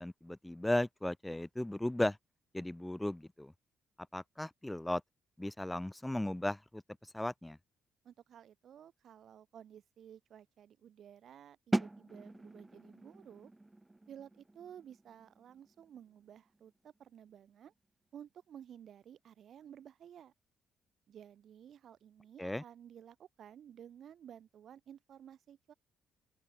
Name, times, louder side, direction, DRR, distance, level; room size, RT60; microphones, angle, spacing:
voice 1, 0.0-2.2 2.5-3.5 4.1-5.0 5.4-7.6 22.4-22.6, left 1 dB, 10° left, 0.8 m, -36 dB
voice 2, 8.0-13.5 14.1-17.7 18.1-20.3 21.1-25.7, right 9 dB, 65° right, 5.9 m, -54 dB
sound 1, 11.7-17.4, right 2 dB, 15° right, 1.2 m, -41 dB
open air
cardioid pair, 90°, 0 cm